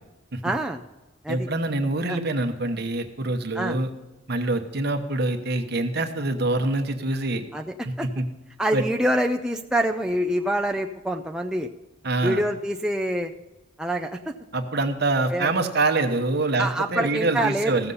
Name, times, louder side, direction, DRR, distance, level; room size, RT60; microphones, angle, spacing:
voice 1, 0.4-0.8 1.2-1.5 2.1-2.2 3.5-3.8 7.5-8.1 8.6-11.7 12.2-13.3 13.8-14.3 15.3-15.5 16.6-17.8, right 1 dB, 5° right, 2 dB, 0.4 m, -26 dB
voice 2, 1.3-3.9 4.3-7.4 7.8-8.3 8.7-8.8 12.0-12.4 14.5-17.9, right 2 dB, 50° right, 6 dB, 1.1 m, -25 dB
15.5 x 7.1 x 5.5 m, 1.1 s
head